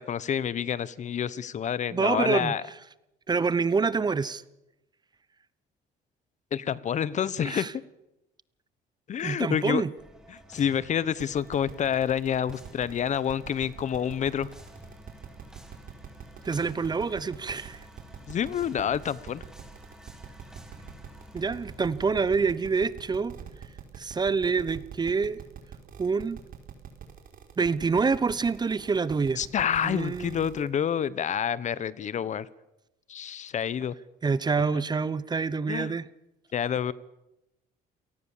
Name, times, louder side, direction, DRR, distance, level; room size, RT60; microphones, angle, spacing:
voice 1, 0.0-2.6 6.5-7.7 9.1-9.8 10.3-14.5 18.3-19.4 29.4-32.5 33.1-33.9 35.7-35.9 36.5-36.9, left 8 dB, 45° left, 19 dB, 1.0 m, -28 dB
voice 2, 1.9-2.6 3.3-4.4 7.4-7.7 9.2-9.9 16.4-17.9 21.3-23.3 24.0-25.4 26.0-26.4 27.6-29.4 29.8-30.4 34.2-36.1, right 5 dB, 25° right, 18 dB, 0.9 m, -26 dB
sound 1, 10.0-24.7, equal, 5° right, 3.4 m, -51 dB
sound 2, 11.2-30.7, right 9 dB, 55° right, 4.8 m, -44 dB
28.5 x 18.5 x 7.3 m, 0.92 s
cardioid pair, 110°, 17 cm